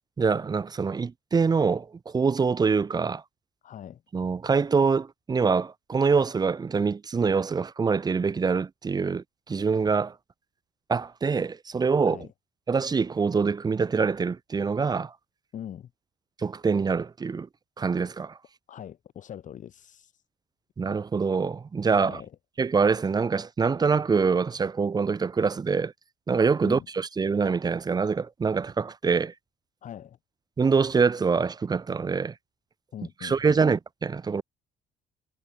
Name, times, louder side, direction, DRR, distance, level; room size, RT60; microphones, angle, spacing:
voice 1, 0.2-3.2 4.1-10.1 10.9-12.3 12.7-15.1 16.4-17.5 17.8-18.4 20.8-22.2 22.6-25.9 26.3-29.3 30.6-32.3 33.2-34.4, right 5 dB, 25° right, 0.8 m, -25 dB
voice 2, 3.6-4.0 12.1-12.3 15.5-15.9 18.7-20.2 22.0-22.3 26.6-26.9 29.8-30.2 32.9-33.6, left 10 dB, 50° left, 1.3 m, -41 dB
cardioid pair, 110°, 17 cm